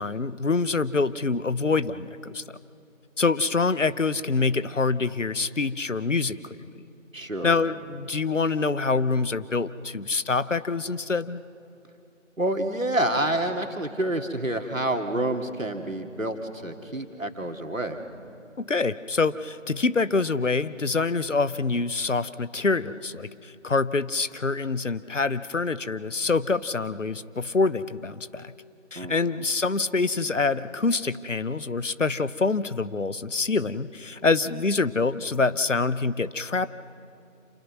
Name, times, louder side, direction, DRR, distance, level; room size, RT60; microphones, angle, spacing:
voice 1, 0.0-2.4 3.2-6.8 7.4-11.4 18.6-28.5 28.9-36.7, left 4 dB, 70° left, 15 dB, 0.8 m, -26 dB
voice 2, 7.1-7.6 12.4-18.0 29.0-29.4, right 1 dB, 80° right, 4 dB, 2.3 m, -28 dB
27.5 x 20.5 x 6.2 m, 2.8 s
figure-of-eight pair, 170°, 39 cm